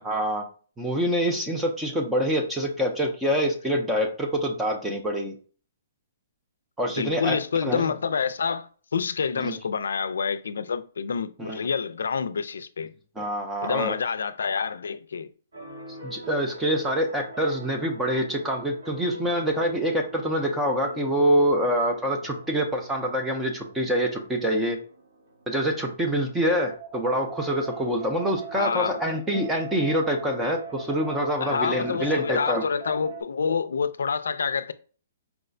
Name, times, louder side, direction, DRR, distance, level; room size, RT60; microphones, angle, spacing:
voice 1, 0.1-0.5 0.8-5.3 6.8-7.9 9.4-9.6 11.4-11.6 13.2-13.9 16.0-24.8 25.5-32.6, equal, 5° right, 0.3 m, -26 dB
voice 2, 6.9-12.9 13.6-15.3 28.5-29.0 31.4-34.7, left 6 dB, 90° left, 0.3 m, -28 dB
sound 1, 15.5-33.2, right 3 dB, 80° right, 1.5 m, -43 dB
4.5 x 2.1 x 2.4 m
hypercardioid pair, 180°, 0 cm